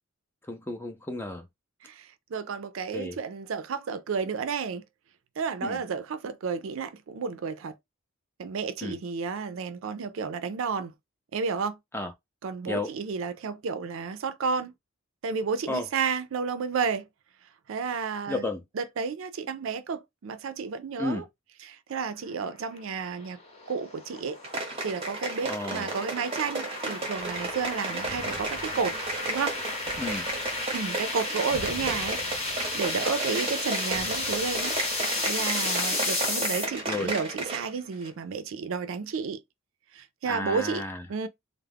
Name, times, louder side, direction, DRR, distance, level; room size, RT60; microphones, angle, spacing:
voice 1, 0.4-1.5 2.9-3.2 5.6-5.8 8.8-9.0 11.9-12.1 12.7-12.9 15.7-15.9 18.3-18.6 21.0-21.2 25.4-25.9 30.0-30.3 36.9-37.1 40.2-41.1, left 2 dB, 10° left, 0.4 m, -32 dB
voice 2, 1.8-4.8 5.4-7.7 8.4-10.9 11.3-11.8 12.4-14.7 15.2-17.0 17.7-18.4 18.8-21.2 21.7-23.4 23.7-24.4 24.8-29.0 29.3-29.6 30.7-32.5 32.7-34.8 35.0-39.4 39.9-40.8 41.1-41.3, right 5 dB, 65° right, 0.4 m, -31 dB
sound 1, 22.7-36.6, left 2 dB, 30° left, 0.7 m, -33 dB
sound 2, 24.4-37.7 38.0-38.1, right 2 dB, 25° right, 0.6 m, -34 dB
sound 3, 27.2-35.8, left 1 dB, 85° left, 0.6 m, -48 dB
2.3 x 2.0 x 3.4 m
head